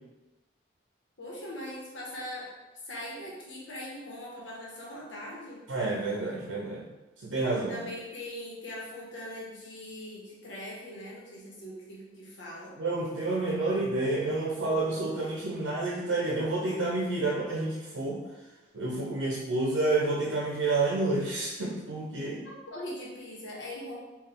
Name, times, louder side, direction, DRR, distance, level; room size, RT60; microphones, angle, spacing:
voice 1, 1.2-2.5 2.8-5.6 7.7-12.8 17.5-17.7 22.7-23.9, left 1 dB, 75° left, -4 dB, 1.1 m, -41 dB
voice 2, 5.7-6.8 7.2-7.8 12.8-18.2 18.7-22.4, right 2 dB, 85° right, -3 dB, 0.6 m, -29 dB
3.9 x 2.4 x 3.6 m, 1.1 s
head